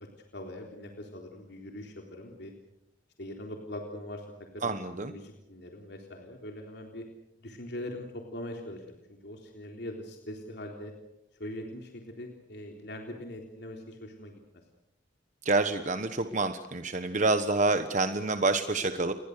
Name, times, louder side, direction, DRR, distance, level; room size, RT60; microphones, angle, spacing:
voice 1, 0.3-2.5 3.2-4.3 4.5-7.1 7.4-10.9 11.4-14.3, left 1 dB, 60° left, 2 dB, 3.7 m, -42 dB
voice 2, 4.6-5.1 15.4-19.1, right 3 dB, 40° right, 8 dB, 1.2 m, -27 dB
30.0 x 22.5 x 6.8 m, 0.83 s
head